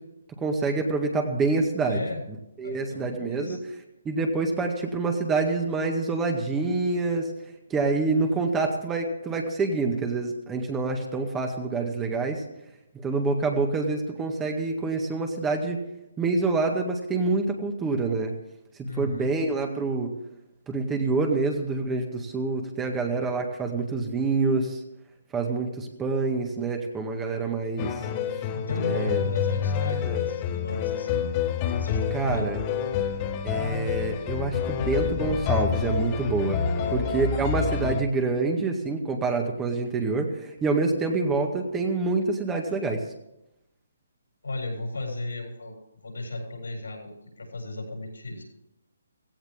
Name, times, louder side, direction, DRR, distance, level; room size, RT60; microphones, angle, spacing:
voice 1, 0.4-2.0 2.6-3.6 4.1-7.3 7.7-12.4 13.0-15.8 16.2-18.3 19.0-20.2 20.7-24.8 25.3-27.9 28.9-29.2 30.1-30.2 32.1-32.6 33.4-36.6 36.9-43.0, right 3 dB, 15° right, 3 dB, 1.9 m, -26 dB
voice 2, 1.9-2.2 2.6-3.6 18.8-19.3 28.5-31.3 31.7-32.5 36.7-37.2 44.4-48.4, left 2 dB, 85° left, 1 dB, 7.3 m, -35 dB
sound 1, 27.8-38.0, left 8 dB, 25° left, 1.4 m, -28 dB
16.5 x 16.0 x 3.7 m, 0.85 s
hypercardioid pair, 150°, 0 cm